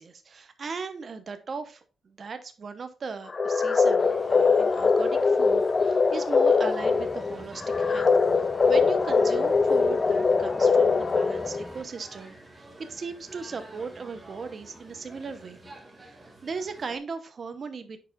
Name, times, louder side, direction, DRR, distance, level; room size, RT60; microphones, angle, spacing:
voice 1, 0.0-15.6 16.0-18.0, right 5 dB, 50° right, 9 dB, 0.7 m, -38 dB
sound 1, 3.3-11.7, left 4 dB, 40° left, 0.3 m, -22 dB
sound 2, 4.0-17.0, right 2 dB, 25° right, 1.8 m, -49 dB
Engine, 6.8-11.8, right 1 dB, 10° right, 1.4 m, -45 dB
10.0 x 4.8 x 2.3 m, 0.34 s
cardioid pair, 90°, 0 cm